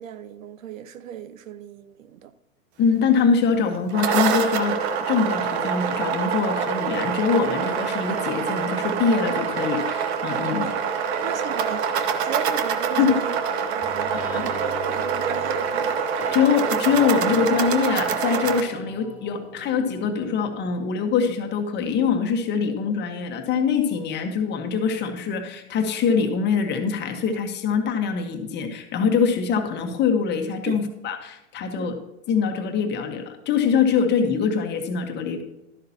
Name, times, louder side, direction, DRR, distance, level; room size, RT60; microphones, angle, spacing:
voice 1, 0.0-2.3 10.6-13.4 13.7-16.1 30.7-30.8 31.7-31.9, right 9 dB, 70° right, 0.8 m, -35 dB
voice 2, 2.8-4.8 5.1-10.7 12.9-13.1 14.1-14.5 16.3-32.0 32.3-35.4, left 6 dB, 25° left, 1.4 m, -23 dB
sound 1, 3.7-18.6, right 6 dB, 50° right, 1.2 m, -25 dB
sound 2, 13.8-20.6, left 1 dB, 5° right, 2.8 m, -41 dB
12.5 x 11.5 x 2.9 m
hypercardioid pair, 120°, 41 cm